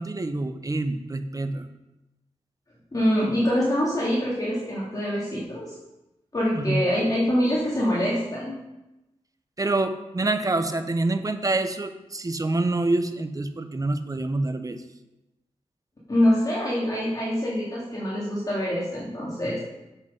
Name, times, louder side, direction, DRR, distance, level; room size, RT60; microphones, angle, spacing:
voice 1, 0.0-1.7 6.5-6.8 9.6-14.8, right 2 dB, 30° right, 8 dB, 1.0 m, -26 dB
voice 2, 2.9-5.8 6.3-8.6 16.1-19.6, equal, 30° left, -7 dB, 3.4 m, -25 dB
8.3 x 7.9 x 5.5 m, 0.98 s
cardioid pair, 60°, 12 cm